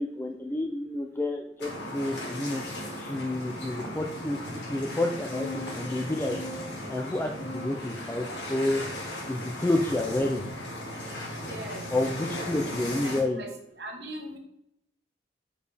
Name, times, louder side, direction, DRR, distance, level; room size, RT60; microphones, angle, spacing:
voice 1, 0.0-2.6 3.0-6.4 6.9-8.8 9.3-10.4 11.9-13.4, left 1 dB, 10° left, 3 dB, 0.4 m, -29 dB
sound 1, 1.6-13.2, left 1 dB, 80° left, 2.0 m, -37 dB
Musical instrument, 5.4-12.2, right 1 dB, 20° right, 2.5 m, -58 dB
voice 2, 8.9-9.3 11.4-11.8 12.6-12.8 13.0-13.5 13.8-14.4, right 1 dB, 65° right, 2 dB, 1.2 m, -41 dB
6.5 x 5.0 x 3.3 m, 0.77 s
head